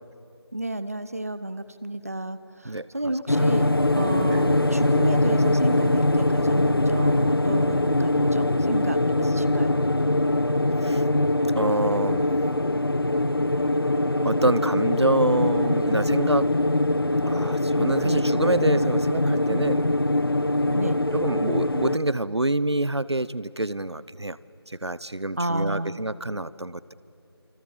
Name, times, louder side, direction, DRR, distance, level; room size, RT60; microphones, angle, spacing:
voice 1, 0.5-9.8 18.0-18.2 20.7-21.0 25.4-26.0, right 1 dB, 35° right, 13 dB, 0.8 m, -31 dB
sound 1, 3.3-22.0, left 1 dB, 60° left, 1.1 m, -22 dB
voice 2, 11.5-12.3 14.2-16.5 17.3-19.9 20.6-24.4 24.7-26.9, right 2 dB, 85° right, 18 dB, 1.0 m, -26 dB
28.5 x 25.5 x 7.1 m, 2.8 s
figure-of-eight pair, 175°, 14 cm